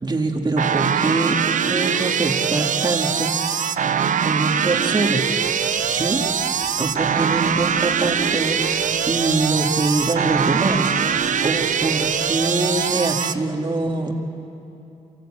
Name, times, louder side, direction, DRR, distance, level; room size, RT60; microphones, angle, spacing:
voice 1, 0.0-3.8 4.2-5.3 5.9-6.3 6.5-14.1, right 2 dB, 30° right, 2 dB, 2.1 m, -24 dB
sound 1, 0.6-13.3, right 7 dB, 65° right, 0.7 m, -22 dB
sound 2, 5.4-12.2, equal, 75° left, 7.4 m, -43 dB
27.0 x 17.5 x 8.8 m, 2.8 s
wide cardioid pair, 120°, 14 cm